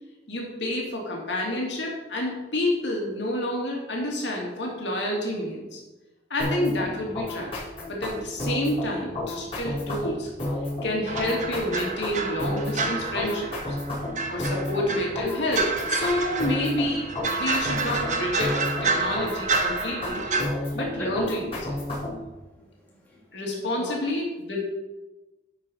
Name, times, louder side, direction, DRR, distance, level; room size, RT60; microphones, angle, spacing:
voice 1, 0.3-5.8 6.3-7.6 7.9-10.3 10.8-13.8 14.3-20.2 20.7-21.7 23.3-24.6, left 1 dB, 80° left, -1 dB, 2.3 m, -29 dB
sound 1, 6.4-22.3, left 1 dB, 30° left, 3.8 m, -31 dB
sound 2, 11.1-20.4, right 3 dB, 40° right, 1.1 m, -29 dB
voice 2, 20.2-21.2 22.3-23.9, left 1 dB, 10° left, -6 dB, 2.7 m, -42 dB
11.0 x 5.1 x 5.4 m, 1.1 s
head